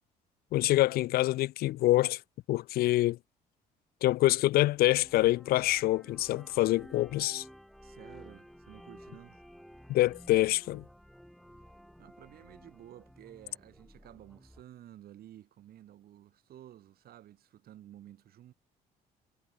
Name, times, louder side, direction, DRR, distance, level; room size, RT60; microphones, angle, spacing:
voice 1, 0.5-2.2 2.5-3.2 4.0-7.4 9.9-10.8, left 16 dB, 65° left, 0.4 m, -26 dB
sound 1, 4.7-14.6, equal, ahead, 3.6 m, -54 dB
voice 2, 7.8-9.4 12.0-18.5, right 12 dB, 65° right, 7.1 m, -53 dB
cardioid pair, 110°, 17 cm